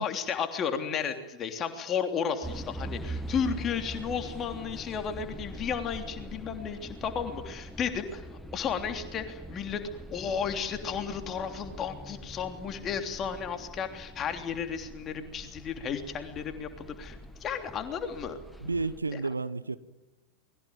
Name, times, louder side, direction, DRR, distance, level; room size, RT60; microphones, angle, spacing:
voice 1, 0.0-8.3 8.5-9.8 10.1-18.4 19.1-19.2, left 7 dB, 30° left, 6 dB, 3.2 m, -33 dB
sound 1, 2.4-19.0, right 1 dB, 5° left, 1.6 m, -43 dB
voice 2, 18.6-19.8, right 3 dB, 80° right, 15 dB, 1.0 m, -31 dB
29.0 x 21.5 x 9.3 m, 1.1 s
figure-of-eight pair, 90°, 0 cm